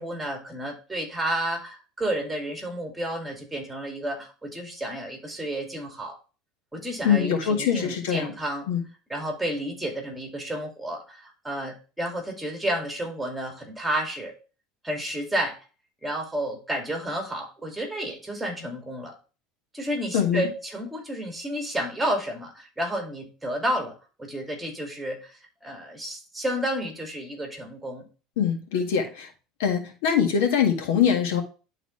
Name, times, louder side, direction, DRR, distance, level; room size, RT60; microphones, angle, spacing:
voice 1, 0.0-6.2 6.7-8.7 9.1-14.3 14.8-15.6 16.0-19.2 19.7-28.1, right 1 dB, 5° right, 3 dB, 2.3 m, -31 dB
voice 2, 7.0-8.3 8.7-8.8 20.1-20.5 28.4-29.3 29.6-31.4, left 8 dB, 90° left, 4 dB, 1.8 m, -23 dB
11.5 x 4.0 x 3.2 m, 0.33 s
supercardioid pair, 130°, 0 cm